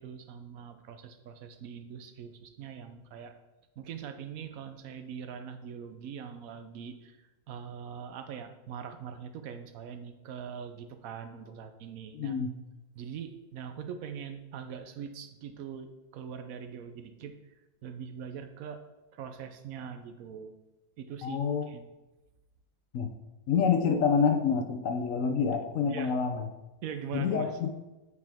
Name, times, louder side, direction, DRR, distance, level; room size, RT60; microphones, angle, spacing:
voice 1, 0.0-3.3 3.8-7.2 7.5-12.4 13.0-17.5 17.8-18.8 19.1-20.5 21.0-21.9 25.9-26.2 26.8-27.5, right 7 dB, 70° right, 8 dB, 1.0 m, -42 dB
voice 2, 12.1-12.5 21.2-21.7 22.9-23.1 23.5-26.4 27.1-27.7, left 6 dB, 65° left, 5 dB, 1.0 m, -27 dB
8.2 x 4.8 x 3.5 m, 1.0 s
omnidirectional pair, 1.6 m